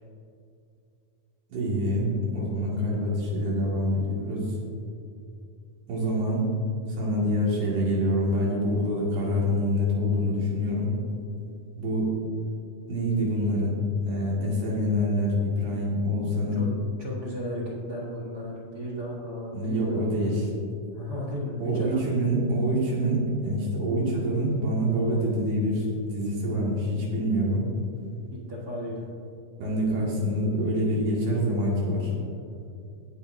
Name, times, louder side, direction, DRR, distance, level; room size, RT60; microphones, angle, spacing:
voice 1, 1.5-4.4 5.9-6.5 6.9-11.0 11.8-12.1 12.9-13.8 14.0-16.7 19.5-20.5 21.6-27.7 29.6-32.1, equal, 90° right, -5 dB, 4.1 m, -26 dB
voice 2, 17.0-20.3 20.9-22.1 28.3-29.1, equal, 65° right, -5 dB, 0.9 m, -35 dB
20.0 x 7.1 x 2.7 m, 2.5 s
omnidirectional pair, 4.4 m